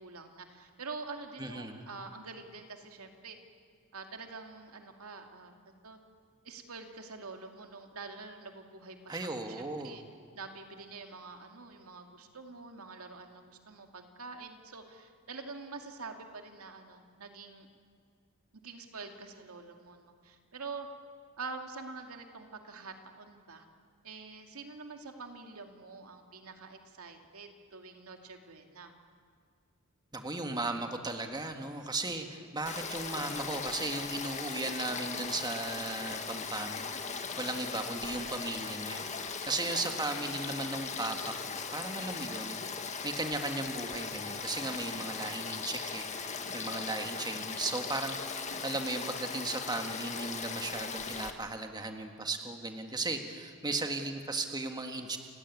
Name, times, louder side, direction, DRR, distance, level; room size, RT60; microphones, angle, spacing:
voice 1, 0.0-3.4 3.9-5.5 5.8-6.0 6.4-10.0 10.3-17.7 18.5-20.9 21.4-23.6 24.0-28.9 39.5-40.0 44.8-45.4 53.7-53.8, right 4 dB, 85° right, 4 dB, 2.4 m, -46 dB
voice 2, 1.4-1.9 9.1-10.0 30.1-42.6 43.0-55.2, right 2 dB, 20° right, 5 dB, 1.7 m, -36 dB
Frog / Stream, 32.7-51.3, left 5 dB, 35° left, 1.6 m, -38 dB
29.5 x 16.5 x 9.5 m, 2.1 s
head